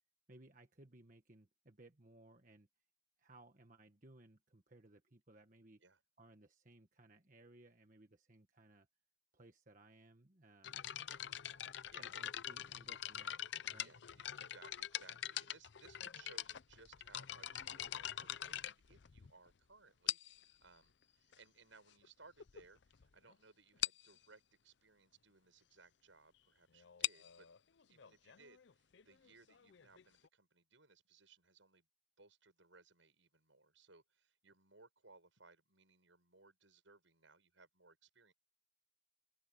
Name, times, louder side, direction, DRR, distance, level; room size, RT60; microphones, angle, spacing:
voice 1, 0.3-2.7 3.2-5.8 6.2-8.9 9.3-10.8 12.0-13.5 13.7-13.9, right 2 dB, 40° right, 1.4 m, -62 dB
sound 1, 10.6-19.5 20.1-20.5 21.3-21.4 22.0-22.1 22.4-22.6 22.9-23.0 23.3-23.4 23.8-24.1 26.8-30.3, left 11 dB, 60° left, 0.6 m, -44 dB
voice 2, 13.8-27.5 27.9-31.9 32.2-38.3, right 4 dB, 75° right, 7.0 m, -65 dB
open air
head